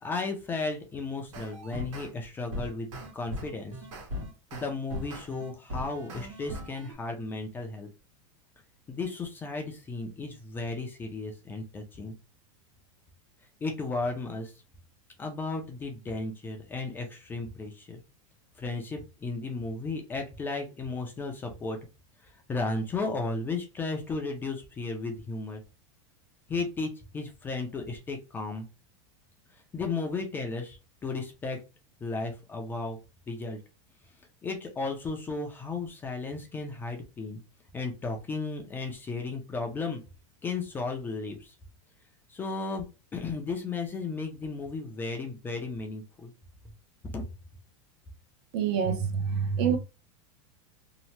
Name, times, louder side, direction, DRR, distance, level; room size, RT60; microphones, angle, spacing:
voice 1, 0.0-3.7 4.5-7.9 8.9-12.1 13.6-14.5 15.2-18.0 18.6-21.8 22.2-25.6 26.5-28.7 29.7-31.6 32.0-33.0 33.3-33.6 34.4-37.4 37.7-40.0 40.4-41.5 42.3-42.9 43.1-46.3 47.1-47.3, left 3 dB, 15° left, 0.4 m, -34 dB
sound 1, 1.3-2.1 2.5-6.9, left 1 dB, 85° right, 1.3 m, -38 dB
voice 2, 48.5-49.8, right 7 dB, 55° right, 0.6 m, -26 dB
2.8 x 2.1 x 3.0 m
supercardioid pair, 160°, 16 cm